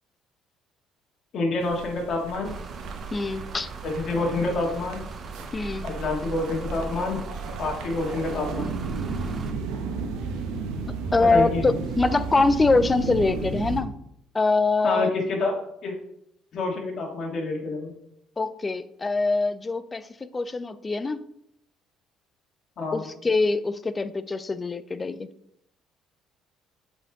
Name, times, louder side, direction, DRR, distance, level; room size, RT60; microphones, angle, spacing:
voice 1, 1.3-2.5 3.8-5.0 5.8-7.2 7.6-8.7 11.3-11.6 14.8-15.5 15.8-15.9 16.5-17.9 22.8-23.0, left 2 dB, 50° left, -1 dB, 1.8 m, -27 dB
sound 1, 1.6-13.8, right 4 dB, 85° right, 0.9 m, -34 dB
sound 2, 2.4-9.5, right 5 dB, 35° right, 0.6 m, -38 dB
voice 2, 3.1-3.7 5.5-5.9 11.1-13.9 14.3-15.1 18.4-20.1 20.3-21.2 22.9-25.3, left 3 dB, 20° left, 14 dB, 0.4 m, -24 dB
8.0 x 4.5 x 3.6 m, 0.76 s
cardioid pair, 115°, 0 cm